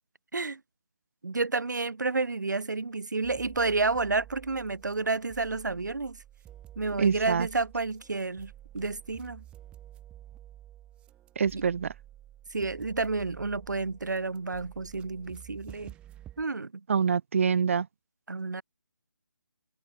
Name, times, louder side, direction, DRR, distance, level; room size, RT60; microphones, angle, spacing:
voice 1, 1.2-6.2 6.8-9.4 11.5-11.6 12.5-15.9 16.4-16.7 18.3-18.6, right 3 dB, 60° right, 2.3 m, -30 dB
sound 1, 3.2-16.4, right 12 dB, 10° right, 6.7 m, -50 dB
voice 2, 7.0-7.5 11.4-11.9 16.9-17.9, right 6 dB, 40° right, 3.7 m, -25 dB
figure-of-eight pair, 150°, 11 cm